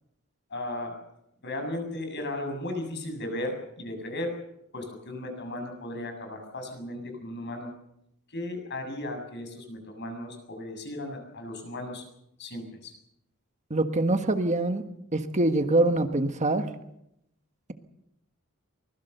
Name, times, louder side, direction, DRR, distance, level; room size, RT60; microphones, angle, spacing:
voice 1, 0.5-1.0 1.4-4.3 4.7-7.7 8.3-12.0 12.4-12.9, left 1 dB, 55° left, 5 dB, 7.3 m, -35 dB
voice 2, 13.7-14.8 15.1-16.6, right 2 dB, 35° right, 7 dB, 1.4 m, -24 dB
24.5 x 20.5 x 6.8 m, 0.80 s
head